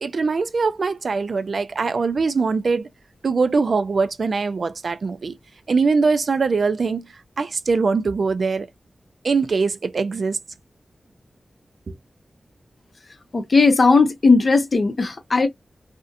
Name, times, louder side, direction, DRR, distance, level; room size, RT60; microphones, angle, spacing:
voice 1, 0.0-2.9 3.2-5.3 5.7-7.0 7.4-8.7 9.2-10.4 11.9-12.0, right 4 dB, 65° right, 0.3 m, -22 dB
voice 2, 13.3-15.5, left 4 dB, 50° left, 0.7 m, -17 dB
2.5 x 2.1 x 2.5 m
wide cardioid pair, 105°, 0 cm